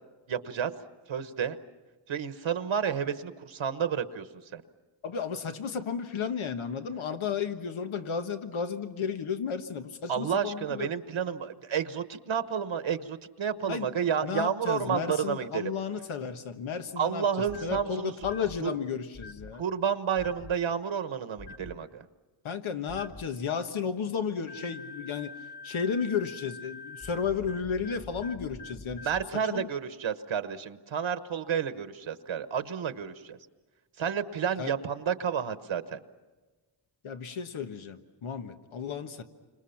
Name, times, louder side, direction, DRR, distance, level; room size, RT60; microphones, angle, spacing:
voice 1, 0.3-0.7 1.1-1.6 2.1-4.6 10.1-15.7 17.0-18.1 18.6-18.7 19.6-22.0 29.0-33.4 34.0-36.0, right 7 dB, 75° right, 10 dB, 1.3 m, -30 dB
voice 2, 5.0-10.9 13.7-13.9 14.2-17.2 17.6-19.6 22.4-25.3 25.6-29.1 29.5-29.7 34.6-34.7 37.0-39.2, left 6 dB, 90° left, 7 dB, 1.4 m, -33 dB
sound 1, 17.5-17.8 18.2-18.6 19.1-19.5 20.2-20.5 21.4-21.7 22.9-23.2 24.5-29.2, left 3 dB, 35° left, 2.0 m, -45 dB
29.5 x 26.0 x 5.9 m, 1.3 s
wide cardioid pair, 90°, 47 cm